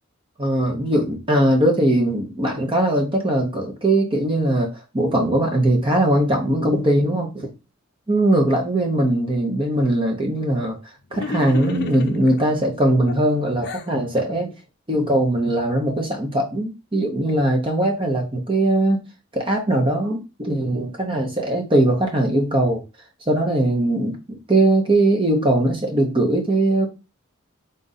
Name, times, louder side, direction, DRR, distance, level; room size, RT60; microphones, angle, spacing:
voice 1, 0.4-7.5 8.1-10.8 11.1-14.5 14.9-19.0 19.3-22.8 23.3-26.9, right 1 dB, 25° right, 1 dB, 0.8 m, -20 dB
sound 1, 11.1-12.4 13.1-13.9, left 3 dB, 55° left, 0.5 m, -31 dB
3.9 x 2.5 x 4.0 m, 0.27 s
head